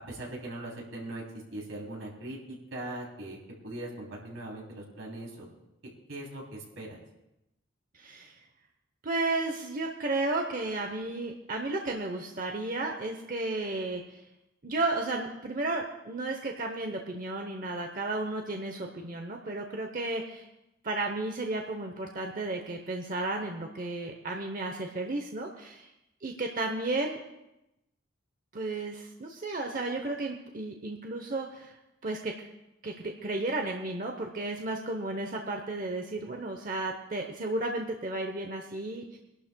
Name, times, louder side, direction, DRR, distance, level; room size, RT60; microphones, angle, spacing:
voice 1, 0.1-1.2 1.5-3.4 3.6-5.5 6.1-7.0, right 1 dB, 85° right, -2 dB, 3.1 m, -40 dB
voice 2, 7.9-8.3 9.0-14.2 14.6-20.5 20.8-25.9 26.2-27.2 28.5-31.7 32.0-32.3 32.8-39.2, right 2 dB, 40° right, 3 dB, 0.8 m, -33 dB
24.0 x 11.5 x 2.2 m, 0.91 s
head